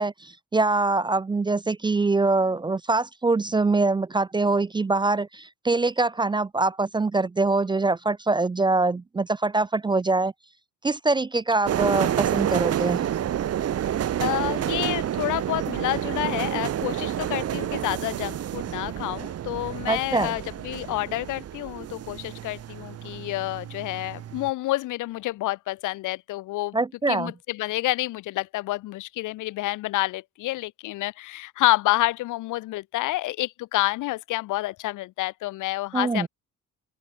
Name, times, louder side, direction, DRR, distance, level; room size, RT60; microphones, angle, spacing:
voice 1, 0.0-10.3 10.8-13.1 19.9-20.4 26.7-27.3 35.9-36.3, right 3 dB, 15° right, 0.3 m, -24 dB
sound 1, 11.7-24.5, right 10 dB, 55° right, 1.0 m, -29 dB
voice 2, 14.2-26.8 27.1-36.3, left 17 dB, 90° left, 1.0 m, -28 dB
open air
cardioid pair, 90°, 30 cm